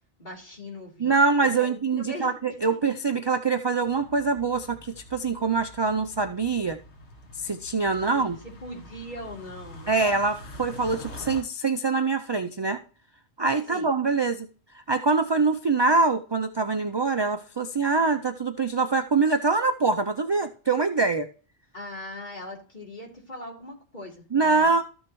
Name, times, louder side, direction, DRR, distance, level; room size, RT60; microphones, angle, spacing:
voice 1, 0.2-1.1 1.6-2.3 8.1-10.1 13.7-13.9 21.7-24.7, left 1 dB, 40° left, -2 dB, 3.5 m, -40 dB
voice 2, 1.0-6.8 7.3-8.4 9.9-12.8 13.4-14.5 14.7-21.3 24.3-24.8, right 4 dB, 40° right, 7 dB, 0.4 m, -24 dB
sound 1, 3.8-11.4, left 1 dB, 75° left, 1.9 m, -45 dB
13.5 x 6.3 x 3.1 m, 0.38 s
omnidirectional pair, 1.2 m